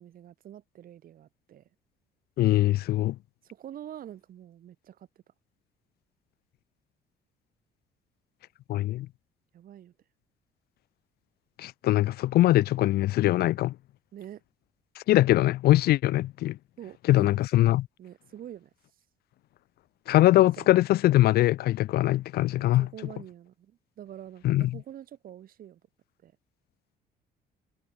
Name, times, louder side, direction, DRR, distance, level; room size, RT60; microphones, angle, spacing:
voice 1, 0.0-1.6 3.4-5.1 9.5-9.9 14.1-14.4 16.8-17.4 18.0-18.7 20.3-20.7 22.4-25.8 26.2-26.3, right 11 dB, 60° right, 6.4 m, -46 dB
voice 2, 2.4-3.2 8.7-9.1 11.6-13.8 15.0-16.6 17.1-17.9 20.1-22.9 24.4-24.8, left 15 dB, 70° left, 0.7 m, -22 dB
cardioid pair, 110°, 17 cm